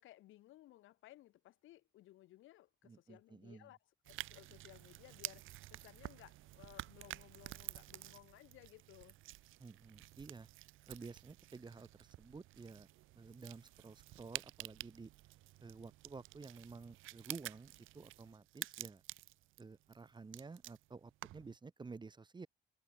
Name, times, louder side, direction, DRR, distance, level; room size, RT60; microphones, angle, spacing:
voice 1, 0.0-3.8 4.1-9.2, left 15 dB, 85° left, 0.9 m, -60 dB
voice 2, 2.8-3.7 9.6-10.5 10.9-12.9 13.1-15.1 15.6-19.0 19.6-22.5, right 4 dB, 20° right, 0.8 m, -52 dB
sound 1, 4.0-21.6, right 17 dB, 85° right, 0.7 m, -51 dB
cardioid pair, 90°, 20 cm